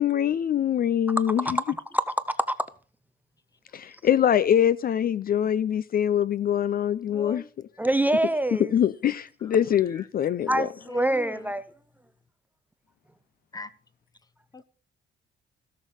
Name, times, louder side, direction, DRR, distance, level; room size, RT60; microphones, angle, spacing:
voice 1, 0.0-1.6 3.7-7.4 8.5-10.7, left 9 dB, 45° left, 0.4 m, -24 dB
voice 2, 1.4-2.7 7.8-8.7 10.5-11.6, right 1 dB, 10° right, 0.5 m, -25 dB
voice 3, 7.1-7.5 9.5-9.6 9.9-10.0 10.7-11.5 13.5-13.7 14.5-14.6, left 2 dB, 20° left, 0.9 m, -40 dB
16.5 x 6.5 x 5.5 m
cardioid pair, 120°, 21 cm